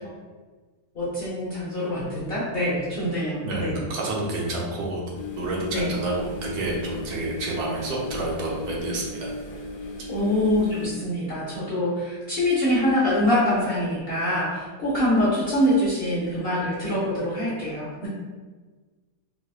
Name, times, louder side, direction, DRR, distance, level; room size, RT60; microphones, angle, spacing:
voice 1, 0.9-3.8 5.7-5.9 10.1-18.1, left 1 dB, 50° left, -8 dB, 0.7 m, -24 dB
voice 2, 3.4-5.0 5.4-9.3, right 2 dB, 75° right, -2 dB, 1.2 m, -29 dB
sound 1, 5.1-10.9, left 1 dB, 90° left, 1.2 m, -36 dB
4.0 x 2.3 x 2.3 m, 1.4 s
omnidirectional pair, 1.7 m